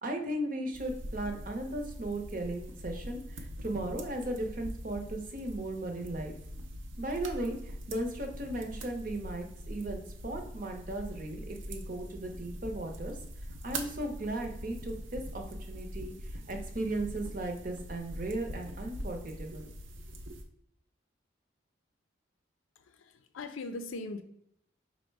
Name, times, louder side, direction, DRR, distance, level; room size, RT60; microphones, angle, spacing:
voice 1, 0.0-6.3 7.0-13.2 13.6-19.7 20.3-20.4, right 1 dB, 45° right, 3 dB, 0.7 m, -36 dB
sound 1, 0.7-20.4, equal, 80° right, 0.6 m, -43 dB
voice 2, 22.8-24.2, left 2 dB, 85° left, 8 dB, 0.4 m, -40 dB
5.0 x 2.1 x 4.5 m, 0.73 s
head